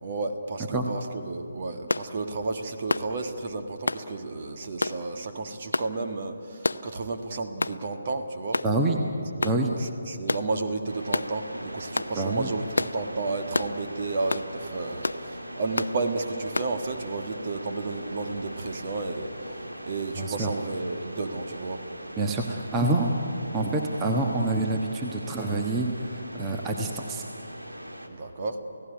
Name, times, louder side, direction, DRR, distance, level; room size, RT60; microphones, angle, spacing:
voice 1, 0.0-8.6 9.3-21.9 28.1-28.6, right 3 dB, 40° right, 6 dB, 1.6 m, -32 dB
sound 1, 1.9-2.1 2.9-3.1 3.9-4.1 4.8-5.0 5.7-5.9 6.6-6.9 7.6-7.8 8.5-8.7 9.4-9.6 10.3-10.5 11.1-11.3 11.9-12.1 12.8-13.0 13.5-13.7 14.3-14.5 15.0-15.2 15.8-15.9 16.5-16.7, left 2 dB, 65° left, 0.7 m, -28 dB
voice 2, 8.6-9.0 9.4-9.7 12.2-12.5 20.2-20.5 22.2-23.1 23.5-27.2, right 2 dB, 15° right, 2 dB, 1.3 m, -27 dB
sound 2, 10.9-28.1, right 1 dB, 75° right, 2.8 m, -40 dB
29.0 x 16.5 x 9.8 m, 2.8 s
figure-of-eight pair, 145°, 0 cm